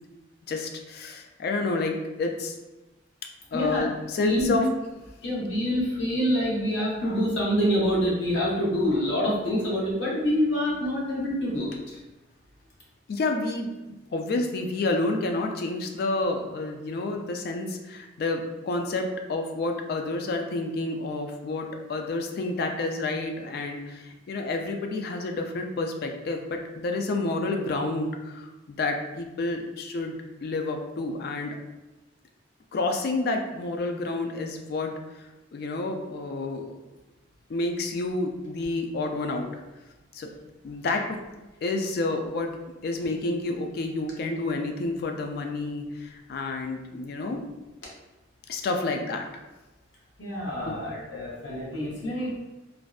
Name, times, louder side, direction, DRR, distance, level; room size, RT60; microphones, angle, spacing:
voice 1, 0.5-2.5 3.5-4.7 13.1-31.6 32.7-34.9 35.5-36.8 37.5-39.5 40.1-40.3 40.6-41.2 41.6-42.5 42.8-47.4 48.5-49.3 50.7-50.8, left 2 dB, 55° left, 4 dB, 0.3 m, -29 dB
voice 2, 3.5-3.8 4.2-4.6 5.2-12.0 50.2-52.4, equal, 75° left, -5 dB, 0.8 m, -26 dB
2.5 x 2.1 x 2.3 m, 1.1 s
head